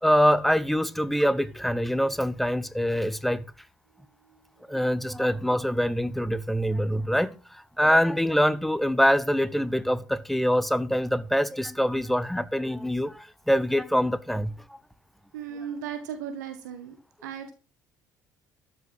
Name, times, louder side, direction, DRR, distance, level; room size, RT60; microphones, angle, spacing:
voice 1, 0.0-3.4 4.7-14.5, equal, ahead, 1.0 m, -24 dB
voice 2, 15.3-16.9 17.2-17.5, right 8 dB, 70° right, 1.4 m, -36 dB
13.0 x 6.1 x 7.5 m
figure-of-eight pair, 55°, 10 cm